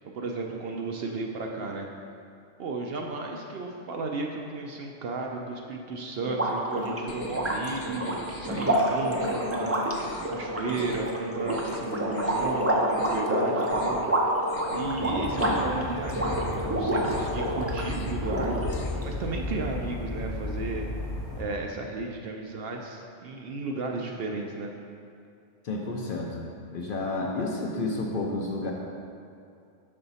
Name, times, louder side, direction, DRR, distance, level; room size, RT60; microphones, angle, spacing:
voice 1, 0.1-1.9 2.6-9.8 10.3-14.0 14.7-18.6 19.0-20.9 21.4-24.7, right 3 dB, 65° right, 1 dB, 0.7 m, -34 dB
sound 1, 6.2-17.8 18.2-19.0, right 1 dB, 20° right, 0.4 m, -28 dB
sound 2, 7.1-8.7 9.0-9.6 9.9-10.3 10.7-11.1 11.4-11.8 12.1-12.5 12.8-13.3 13.6-14.0 14.4-15.0 15.3-15.7 16.0-16.5 16.9-17.4 17.7-18.2 18.5-19.1, left 4 dB, 75° left, 0.9 m, -45 dB
sound 3, 14.8-21.4, left 1 dB, 40° left, 1.1 m, -34 dB
voice 2, 25.6-26.4 26.7-28.7, left 2 dB, 60° left, 0 dB, 0.6 m, -30 dB
5.8 x 5.5 x 4.0 m, 2.4 s
omnidirectional pair, 1.3 m